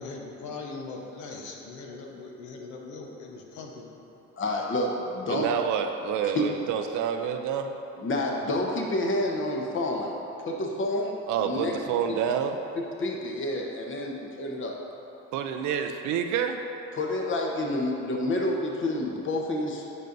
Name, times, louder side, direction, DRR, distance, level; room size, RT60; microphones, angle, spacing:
voice 1, 0.0-3.9, left 3 dB, 85° left, 0 dB, 0.9 m, -40 dB
voice 2, 4.4-5.5 6.3-6.5 8.0-11.2 11.4-11.7 12.1-12.2 12.8-14.7 16.9-19.8, left 1 dB, 45° left, 0 dB, 1.0 m, -29 dB
voice 3, 5.3-7.8 11.3-12.6 15.3-16.6, right 7 dB, 80° right, 5 dB, 0.5 m, -28 dB
9.5 x 5.3 x 2.6 m, 3.0 s
cardioid pair, 80°, 29 cm